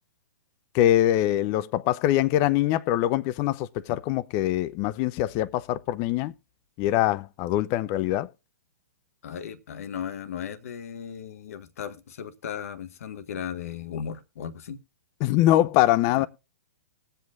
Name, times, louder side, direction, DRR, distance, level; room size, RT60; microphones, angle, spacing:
voice 1, 0.7-6.3 6.8-8.3 15.2-16.3, left 14 dB, 30° left, 0.4 m, -23 dB
voice 2, 9.2-14.8 16.1-16.3, left 8 dB, 60° left, 1.0 m, -36 dB
20.5 x 7.7 x 2.4 m
figure-of-eight pair, 115°, 9 cm